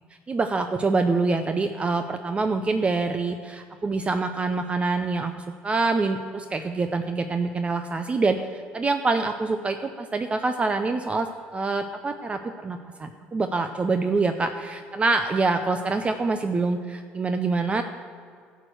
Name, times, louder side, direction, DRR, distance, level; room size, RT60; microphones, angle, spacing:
voice 1, 0.3-11.3 11.5-17.8, right 3 dB, 25° right, 7 dB, 0.5 m, -25 dB
12.0 x 4.6 x 7.8 m, 2.2 s
supercardioid pair, 85°, 5 cm